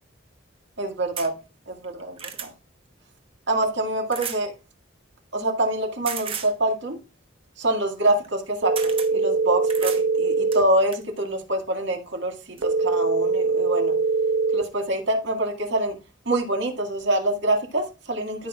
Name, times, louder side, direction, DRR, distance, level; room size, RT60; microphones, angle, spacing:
voice 1, 0.8-1.3 1.7-2.5 3.5-4.5 5.3-7.0 7.6-13.9 14.5-16.0 16.3-18.5, right 1 dB, 60° right, 2.0 m, -25 dB
sound 1, 1.2-1.3 1.8-2.5 4.1-4.4 6.1-6.5 8.2-8.4 8.8-9.1 9.7-10.0 10.5-11.1 12.1-12.2 12.6-12.7, right 7 dB, 30° right, 1.0 m, -34 dB
sound 2, 8.6-10.6 12.6-14.6, right 3 dB, 80° right, 0.9 m, -22 dB
13.5 x 5.8 x 2.4 m
head